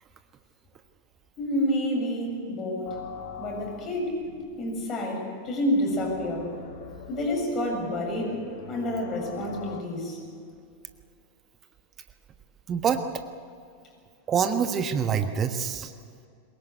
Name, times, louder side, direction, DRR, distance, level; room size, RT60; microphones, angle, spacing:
voice 1, 1.4-3.0 3.4-4.2 4.6-6.5 7.1-10.2, equal, 30° left, 1 dB, 7.5 m, -29 dB
sound 1, 2.9-9.8, left 6 dB, 50° left, 2.7 m, -44 dB
voice 2, 12.7-13.2 14.3-15.9, right 7 dB, 25° right, 8 dB, 1.3 m, -26 dB
23.0 x 20.5 x 8.3 m, 2.3 s
figure-of-eight pair, 90°, 0 cm